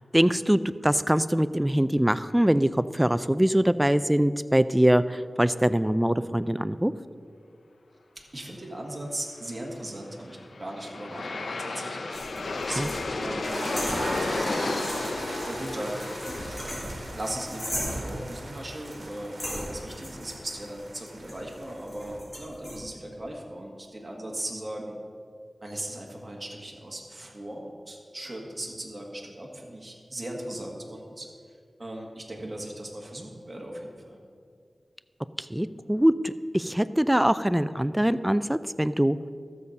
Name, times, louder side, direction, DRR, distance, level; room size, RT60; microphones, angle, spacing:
voice 1, 0.0-6.9 12.8-12.9 35.5-39.2, equal, 10° right, 14 dB, 0.3 m, -23 dB
voice 2, 8.1-16.6 17.1-24.9 25.6-31.3 31.8-34.2, right 1 dB, 30° right, -1 dB, 1.6 m, -38 dB
Aircraft, 10.1-21.2, left 3 dB, 85° left, 0.6 m, -35 dB
sound 1, 12.1-14.5 14.8-18.3 18.8-19.0 19.4-22.8, equal, 15° left, 3.1 m, -38 dB
sound 2, 13.4-22.2, right 2 dB, 70° right, 1.4 m, -40 dB
13.0 x 7.1 x 5.3 m, 2.3 s
wide cardioid pair, 70°, 0 cm